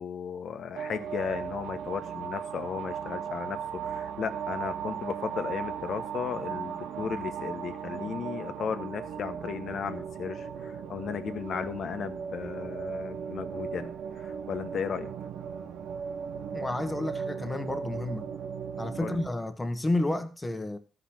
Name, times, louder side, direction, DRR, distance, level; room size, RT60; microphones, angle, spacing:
voice 1, 0.0-15.1 19.0-19.2, left 7 dB, 60° left, 1.1 m, -35 dB
sound 1, 0.7-19.3, right 7 dB, 85° right, 0.9 m, -37 dB
voice 2, 16.5-18.3 18.8-20.8, left 2 dB, 15° left, 1.2 m, -31 dB
13.0 x 5.0 x 6.0 m
cardioid pair, 90°, 0 cm